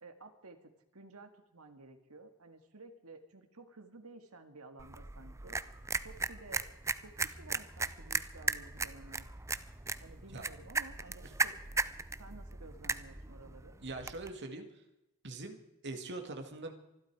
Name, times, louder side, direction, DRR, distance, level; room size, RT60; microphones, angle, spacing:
voice 1, 0.0-5.6 6.0-6.6 7.0-9.3 10.0-11.5 12.2-13.7, right 3 dB, 70° right, 7 dB, 1.9 m, -53 dB
sound 1, 4.8-14.3, right 4 dB, 15° right, 0.5 m, -37 dB
voice 2, 13.8-14.7 15.2-16.7, right 2 dB, 55° right, 5 dB, 2.1 m, -42 dB
24.5 x 12.0 x 4.8 m, 0.93 s
head